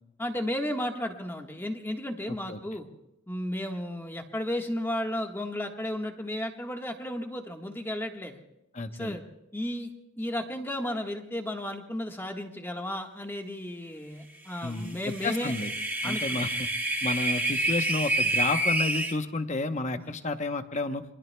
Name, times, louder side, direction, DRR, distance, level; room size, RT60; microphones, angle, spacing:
voice 1, 0.2-2.9 3.3-8.4 8.9-9.2 9.5-9.9 10.2-15.5 16.0-16.4 19.9-20.1, left 1 dB, 10° left, 3 dB, 1.4 m, -33 dB
voice 2, 8.7-9.1 14.6-15.7 16.0-16.7 17.0-21.0, left 2 dB, 35° left, 8 dB, 0.9 m, -31 dB
sound 1, 14.9-19.1, right 1 dB, 10° right, 1.6 m, -28 dB
27.5 x 23.0 x 2.3 m, 0.90 s
head